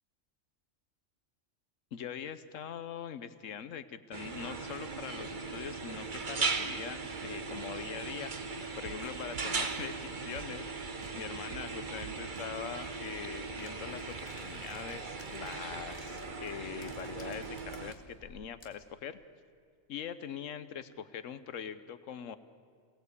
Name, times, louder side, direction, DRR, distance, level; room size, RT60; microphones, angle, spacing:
voice 1, 1.9-19.2 19.9-22.4, left 8 dB, 90° left, 13 dB, 1.2 m, -43 dB
sound 1, 4.1-17.9, right 4 dB, 40° right, 1.3 m, -38 dB
sound 2, 8.4-13.6 14.0-14.1, right 9 dB, 70° right, 1.1 m, -52 dB
sound 3, 13.6-18.9, left 2 dB, 50° left, 2.2 m, -57 dB
28.0 x 18.5 x 8.3 m, 2.1 s
omnidirectional pair, 1.3 m